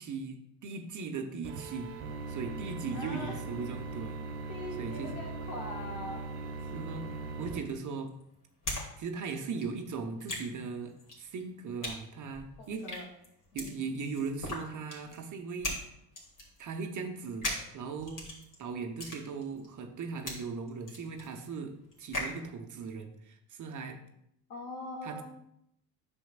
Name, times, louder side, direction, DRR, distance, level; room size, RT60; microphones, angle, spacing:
voice 1, 0.0-1.9 2.3-4.2 4.8-5.1 6.7-7.1 7.4-8.1 9.0-12.9 13.5-15.8 16.6-18.3 18.6-24.0 25.0-25.2, right 4 dB, 35° right, 5 dB, 1.0 m, -38 dB
sound 1, 1.4-7.6, right 3 dB, 60° right, 1.2 m, -40 dB
voice 2, 2.9-3.3 4.5-6.2 12.6-13.1 13.5-13.8 24.5-25.2, left 1 dB, 70° left, -1 dB, 2.2 m, -41 dB
sound 2, 7.5-8.9 9.1-22.4, left 1 dB, 40° left, 2.6 m, -40 dB
9.1 x 6.3 x 2.5 m, 0.76 s
hypercardioid pair, 65°, 49 cm